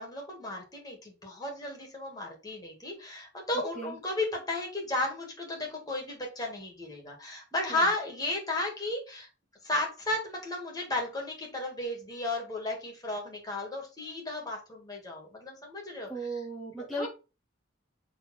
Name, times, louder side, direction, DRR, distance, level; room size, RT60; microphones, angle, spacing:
voice 1, 0.0-9.3 9.6-16.4 16.8-17.1, left 2 dB, 20° left, 0 dB, 2.2 m, -34 dB
voice 2, 16.1-17.1, right 2 dB, ahead, -5 dB, 1.2 m, -36 dB
6.7 x 3.8 x 4.4 m, 0.31 s
head